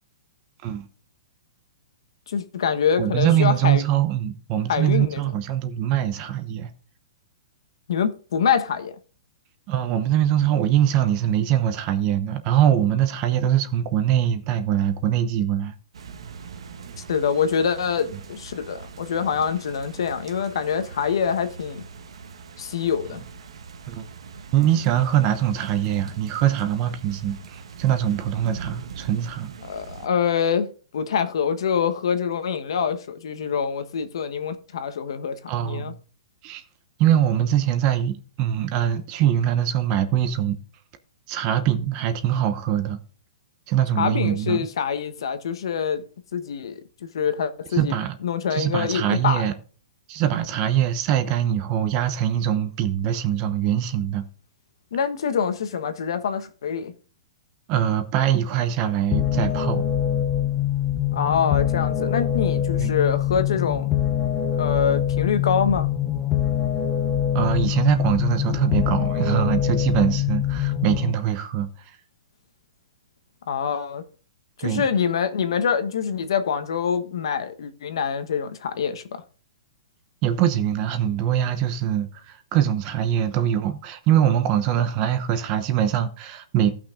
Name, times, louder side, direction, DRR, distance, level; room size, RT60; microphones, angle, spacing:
voice 1, 2.3-3.8 4.7-5.2 7.9-8.9 17.1-21.8 22.6-23.2 29.7-35.3 35.6-35.9 44.0-46.0 46.3-46.8 47.1-47.9 48.2-49.5 54.9-56.9 61.1-63.9 64.6-65.9 73.5-74.0 74.6-79.0, left 7 dB, 60° left, 1.3 m, -25 dB
voice 2, 3.0-6.7 9.7-15.7 23.9-24.0 24.5-29.5 35.5-35.9 36.4-36.6 37.0-40.6 41.3-43.0 43.7-44.7 47.7-48.1 48.5-49.5 50.1-54.2 57.7-59.8 62.8-62.9 67.3-71.7 74.6-74.9 80.2-86.7, right 10 dB, 20° right, 0.8 m, -23 dB
sound 1, 15.9-30.1, right 5 dB, 85° right, 1.5 m, -41 dB
sound 2, 59.1-71.1, left 10 dB, 15° left, 0.7 m, -24 dB
15.5 x 5.9 x 3.7 m
hypercardioid pair, 180°, 3 cm